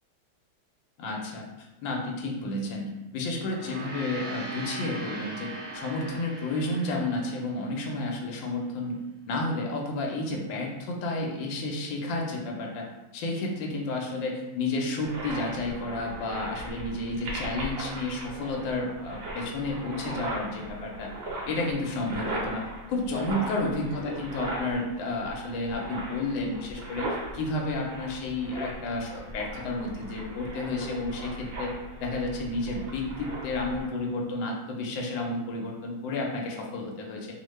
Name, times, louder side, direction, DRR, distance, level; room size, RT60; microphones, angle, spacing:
voice 1, 1.0-1.5 1.8-9.0 9.3-12.9 13.1-21.1 21.4-27.1 27.3-31.7 32.0-37.3, left 2 dB, 80° left, 0 dB, 1.3 m, -31 dB
Gong, 3.4-8.0, right 2 dB, 60° right, 0.9 m, -40 dB
sound 1, 15.0-33.9, right 1 dB, 80° right, 1.4 m, -38 dB
3.3 x 2.1 x 3.1 m, 1.0 s
omnidirectional pair, 2.1 m